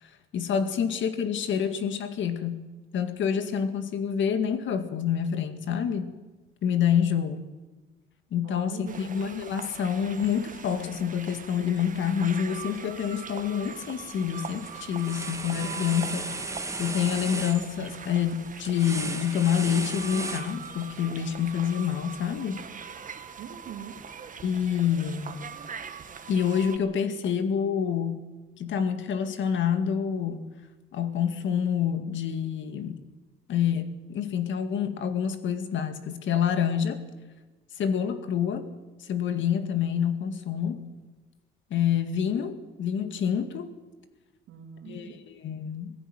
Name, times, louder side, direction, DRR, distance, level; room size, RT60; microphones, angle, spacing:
voice 1, 0.0-2.7 2.9-6.1 6.6-7.5 8.3-16.4 16.8-22.6 24.4-25.4 26.3-28.3 28.6-30.4 30.9-33.0 33.5-37.0 37.8-38.7 39.0-40.9 41.7-43.7 44.9-45.9, left 8 dB, 75° left, 9 dB, 2.1 m, -27 dB
voice 2, 8.4-9.1 23.4-24.0 44.5-45.2, right 7 dB, 85° right, 4 dB, 3.1 m, -43 dB
sound 1, 8.9-26.8, right 6 dB, 40° right, 1.6 m, -42 dB
sound 2, 13.8-14.1 14.4-21.0, right 2 dB, 15° right, 1.7 m, -35 dB
19.0 x 15.5 x 9.2 m, 1.2 s
cardioid pair, 90°, 20 cm